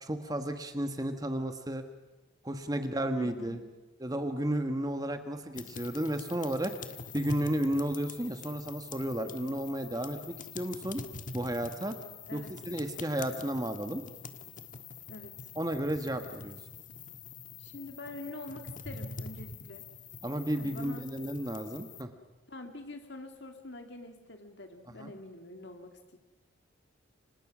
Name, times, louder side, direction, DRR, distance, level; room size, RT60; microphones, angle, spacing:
voice 1, 0.0-1.8 2.4-3.6 4.0-6.7 7.1-11.0 11.3-12.0 12.3-14.0 15.5-16.6 20.2-22.1 25.0-25.1, right 1 dB, 20° right, 7 dB, 1.4 m, -33 dB
voice 2, 3.2-3.7 12.3-12.6 15.1-15.5 17.6-19.9 20.6-21.1 22.5-26.2, left 2 dB, 60° left, 5 dB, 2.2 m, -45 dB
sound 1, 5.5-22.0, left 4 dB, 40° left, 1.4 m, -45 dB
30.0 x 25.5 x 6.2 m, 1.1 s
head